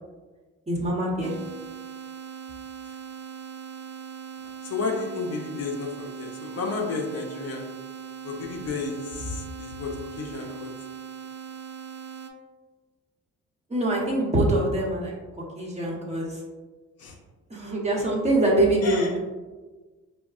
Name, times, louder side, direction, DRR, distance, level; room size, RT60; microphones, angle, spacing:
voice 1, 0.7-1.3 13.7-15.1 15.5-16.4 17.5-19.2, right 1 dB, 20° right, -4 dB, 0.9 m, -24 dB
sound 1, 1.2-12.3, right 8 dB, 60° right, 0.4 m, -40 dB
voice 2, 4.6-7.7 8.2-9.9 10.2-10.7 17.0-17.2 18.8-19.2, left 4 dB, 55° left, 0 dB, 0.6 m, -32 dB
4.4 x 2.1 x 2.4 m, 1.3 s
cardioid pair, 90°, 30 cm